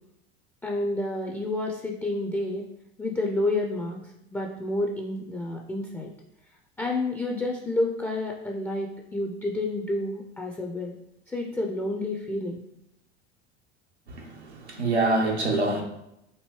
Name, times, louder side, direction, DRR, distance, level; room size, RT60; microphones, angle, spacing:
voice 1, 0.6-2.7 3.0-6.1 6.8-10.9 11.3-12.6, left 2 dB, 5° left, 0.3 m, -29 dB
voice 2, 14.1-15.8, right 2 dB, 90° right, 0.8 m, -26 dB
4.5 x 2.7 x 3.0 m
figure-of-eight pair, 70°, 33 cm